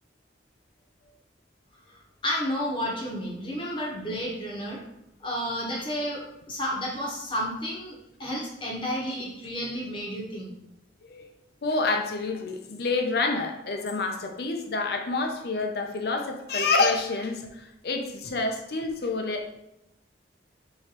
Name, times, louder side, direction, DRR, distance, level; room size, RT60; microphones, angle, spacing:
voice 1, 1.9-4.8 5.2-10.5, equal, 25° left, -2 dB, 0.9 m, -31 dB
voice 2, 11.6-19.5, left 3 dB, 55° left, 4 dB, 0.6 m, -28 dB
4.8 x 3.1 x 2.9 m, 0.87 s
head